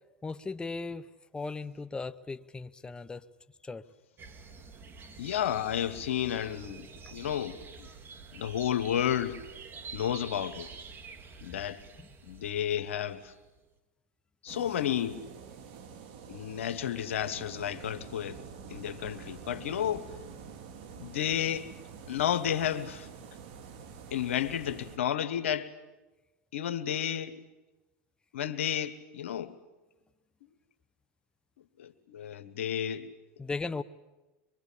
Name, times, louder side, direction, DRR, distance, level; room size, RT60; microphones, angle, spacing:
voice 1, 0.2-1.0 1.3-3.3 3.6-3.8 7.0-7.1 33.4-33.8, left 3 dB, 15° left, 0.8 m, -37 dB
sound 1, 4.2-13.6, right 4 dB, 30° right, 2.0 m, -48 dB
voice 2, 5.2-6.9 7.1-7.9 8.3-9.4 9.9-10.7 11.4-11.8 12.2-13.3 14.4-15.2 16.3-18.4 18.7-20.1 21.0-21.7 22.1-23.1 24.1-25.7 26.5-27.4 28.3-29.5 31.8-33.1, left 10 dB, 90° left, 1.3 m, -32 dB
sound 2, 14.5-25.0, right 6 dB, 65° right, 2.2 m, -47 dB
23.5 x 23.0 x 8.5 m
hypercardioid pair, 105°, 7 cm